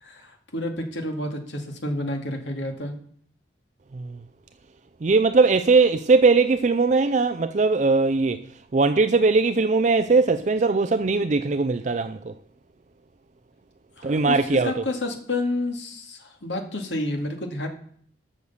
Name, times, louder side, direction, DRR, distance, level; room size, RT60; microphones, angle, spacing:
voice 1, 0.0-3.0 14.0-17.7, left 1 dB, 80° left, 2.1 m, -30 dB
voice 2, 5.0-8.4 8.7-12.3 14.0-14.7, right 4 dB, 40° right, 0.4 m, -20 dB
13.0 x 6.4 x 7.0 m
head